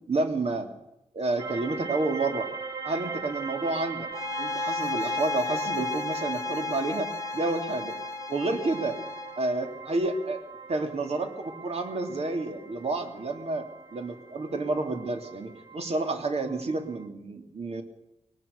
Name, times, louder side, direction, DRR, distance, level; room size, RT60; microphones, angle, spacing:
voice 1, 0.1-0.7 1.1-2.5 2.8-4.1 4.4-7.9 8.3-8.9 9.4-10.4 10.7-17.8, right 2 dB, 65° right, 5 dB, 2.9 m, -30 dB
sound 1, 1.4-17.0, right 5 dB, 35° right, 1.8 m, -41 dB
sound 2, 4.1-9.4, left 3 dB, 25° left, 1.2 m, -33 dB
22.0 x 18.5 x 6.7 m, 0.89 s
wide cardioid pair, 105°, 11 cm